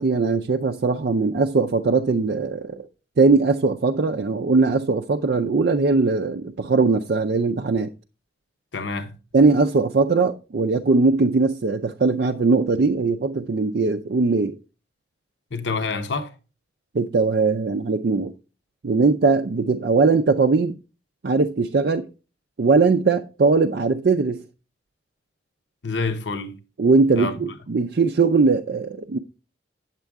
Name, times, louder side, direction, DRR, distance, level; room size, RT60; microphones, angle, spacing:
voice 1, 0.0-2.9 3.2-7.9 9.3-14.6 16.9-18.3 18.8-20.8 21.2-22.1 22.6-24.4 26.8-29.2, right 4 dB, 55° right, 0.4 m, -20 dB
voice 2, 8.7-9.1 15.5-16.3 25.8-26.6 27.2-27.4, left 4 dB, 75° left, 0.8 m, -27 dB
9.0 x 7.4 x 3.5 m
head